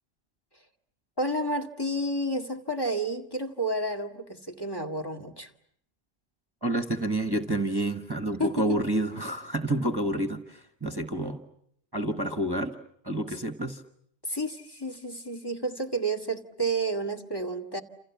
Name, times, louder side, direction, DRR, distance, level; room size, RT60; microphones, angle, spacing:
voice 1, 1.2-5.5 8.4-8.8 14.2-17.8, right 1 dB, 20° left, 7 dB, 2.0 m, -30 dB
voice 2, 6.6-11.4 11.9-12.7 13.0-13.8, right 1 dB, 20° right, 9 dB, 1.4 m, -29 dB
29.0 x 28.5 x 7.2 m, 0.70 s
omnidirectional pair, 1.1 m